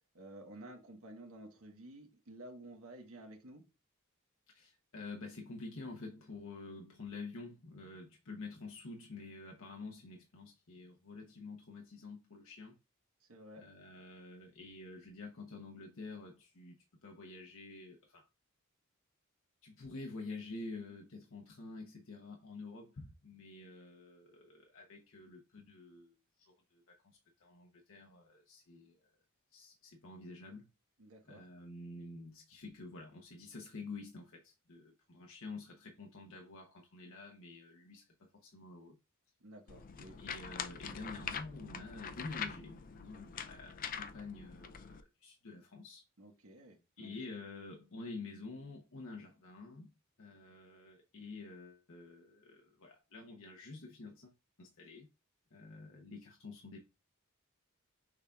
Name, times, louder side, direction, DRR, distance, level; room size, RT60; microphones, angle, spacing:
voice 1, 0.1-3.6 13.2-13.6 31.0-31.4 39.4-40.2 43.1-43.2 46.2-47.2, right 1 dB, 70° right, 1.3 m, -52 dB
voice 2, 4.5-12.8 13.6-18.3 19.6-29.1 29.5-30.7 31.3-39.0 40.2-46.0 47.0-49.9 50.2-54.3 54.6-55.1 55.5-56.8, left 3 dB, 65° left, 0.8 m, -49 dB
sound 1, 39.7-45.0, left 7 dB, 40° left, 0.4 m, -44 dB
6.3 x 3.6 x 2.4 m
head